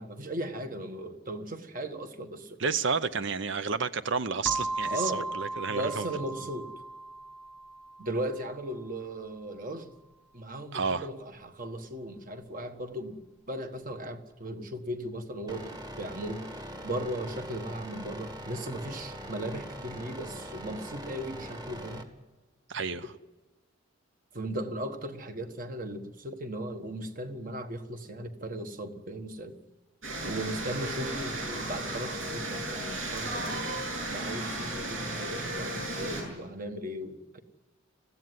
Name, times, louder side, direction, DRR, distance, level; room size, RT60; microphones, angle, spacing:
voice 1, 0.0-2.6 4.9-5.3 5.7-6.7 8.0-9.9 10.3-13.2 13.5-22.1 24.3-29.6 30.2-33.7 34.1-37.4, right 1 dB, 40° right, 1.5 m, -37 dB
voice 2, 2.6-6.1 10.7-11.1 22.7-23.1 30.2-30.3, right 5 dB, 60° right, 0.7 m, -31 dB
sound 1, 4.5-8.9, right 2 dB, 5° left, 0.7 m, -37 dB
sound 2, 15.5-22.0, right 1 dB, 20° right, 1.5 m, -42 dB
sound 3, 30.0-36.2, right 1 dB, 75° right, 7.4 m, -35 dB
20.5 x 15.5 x 9.6 m
head